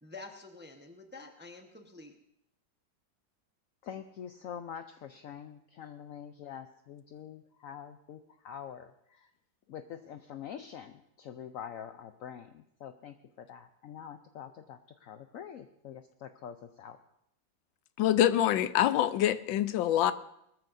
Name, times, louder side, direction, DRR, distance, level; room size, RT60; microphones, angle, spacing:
voice 1, 0.0-2.1, left 3 dB, 10° right, 3 dB, 0.7 m, -48 dB
voice 2, 3.8-8.2 8.4-9.3 9.7-17.0, left 8 dB, 70° left, 8 dB, 0.8 m, -45 dB
voice 3, 18.0-20.1, left 11 dB, 90° left, 14 dB, 1.4 m, -25 dB
20.0 x 14.0 x 2.7 m, 0.78 s
omnidirectional pair, 2.0 m